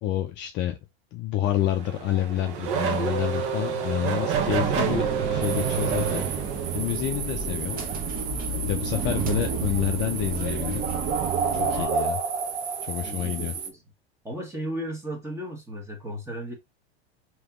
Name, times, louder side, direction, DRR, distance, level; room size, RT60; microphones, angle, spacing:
voice 1, 0.0-0.8 1.1-6.2 6.7-7.8 8.6-10.9 11.5-12.2 12.8-13.5, left 12 dB, 35° left, 0.5 m, -28 dB
Race car auto racing / Accelerating revving vroom, 1.5-7.0, right 7 dB, 55° right, 0.9 m, -29 dB
voice 2, 3.4-3.8 11.7-12.0 13.0-13.8 14.2-16.6, equal, 10° right, 1.4 m, -35 dB
sound 1, 4.3-11.8, right 5 dB, 25° right, 1.0 m, -30 dB
sound 2, 5.4-13.7, right 5 dB, 85° right, 0.8 m, -31 dB
3.4 x 3.0 x 3.6 m
hypercardioid pair, 120°, 32 cm